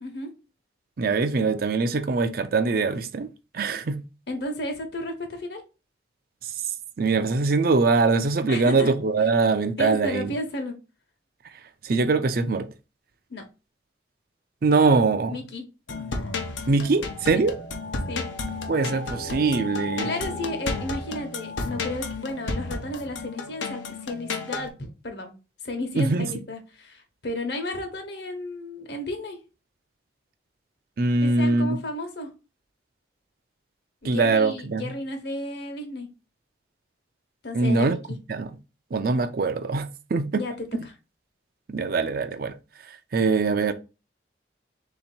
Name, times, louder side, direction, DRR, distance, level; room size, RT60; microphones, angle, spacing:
voice 1, 0.0-0.3 4.3-5.6 8.5-8.9 9.8-10.7 13.3-13.4 15.3-15.6 17.3-17.4 18.1-18.3 20.0-25.3 25.6-29.4 31.2-32.3 34.0-36.1 37.4-38.2 40.3-40.7, left 1 dB, 65° left, 1.1 m, -33 dB
voice 2, 1.0-3.3 3.5-4.0 6.4-6.5 7.0-10.3 11.8-12.7 14.6-15.4 16.7-17.5 18.7-20.1 26.0-26.3 31.0-31.8 34.0-34.9 37.5-38.0 38.3-38.6 38.9-40.4 41.7-42.5 42.8-43.7, right 3 dB, 50° right, 0.4 m, -23 dB
sound 1, 15.9-24.7, left 3 dB, 85° left, 0.8 m, -32 dB
3.7 x 2.8 x 4.3 m
head